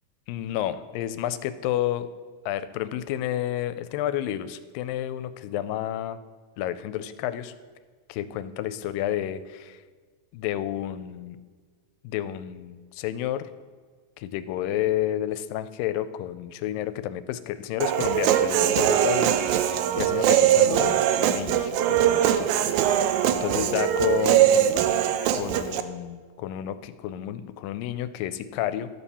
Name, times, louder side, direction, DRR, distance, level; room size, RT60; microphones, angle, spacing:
voice 1, 0.3-2.1 2.5-6.2 6.6-7.5 8.1-9.8 10.3-11.4 12.0-13.5 14.2-23.0 23.3-24.7 25.3-28.9, left 12 dB, 85° left, 12 dB, 2.2 m, -30 dB
Human voice, 17.8-25.8, right 10 dB, 85° right, 1.7 m, -22 dB
12.0 x 4.2 x 7.1 m, 1.5 s
omnidirectional pair, 3.9 m